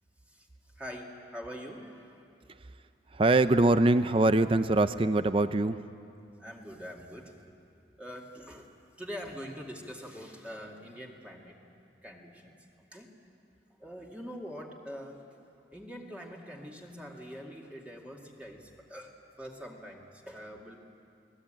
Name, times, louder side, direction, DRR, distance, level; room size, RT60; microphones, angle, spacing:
voice 1, 0.2-2.3 6.3-7.4 8.0-8.7 9.0-11.6 12.0-12.6 12.9-13.1 13.8-15.4 15.7-20.8, equal, 5° right, -2 dB, 2.2 m, -44 dB
voice 2, 3.1-5.8, right 2 dB, 30° right, 11 dB, 0.5 m, -23 dB
30.0 x 19.5 x 8.9 m, 2.6 s
head